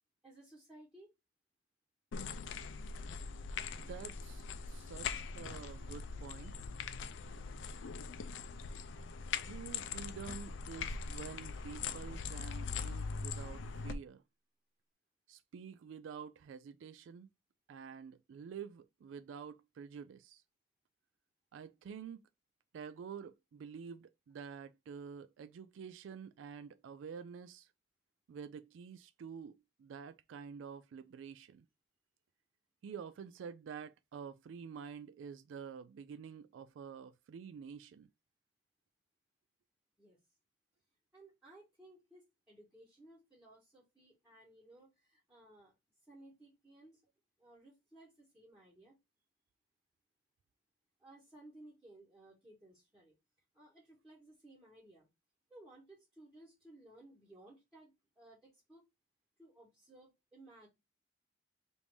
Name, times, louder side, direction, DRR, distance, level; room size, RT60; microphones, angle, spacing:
voice 1, 0.2-1.1 40.0-40.2 41.1-45.7 46.1-47.0 47.4-49.0 51.0-53.1 53.5-55.1 55.5-58.8 59.4-60.7, right 1 dB, 5° right, 1.4 m, -59 dB
sound 1, 2.1-14.0, left 5 dB, 85° left, 0.4 m, -42 dB
voice 2, 3.7-6.6 9.4-14.2 15.3-17.3 17.7-20.4 21.5-22.2 22.7-27.7 28.3-31.7 32.8-38.1, right 6 dB, 85° right, 0.3 m, -48 dB
3.4 x 2.6 x 4.6 m
head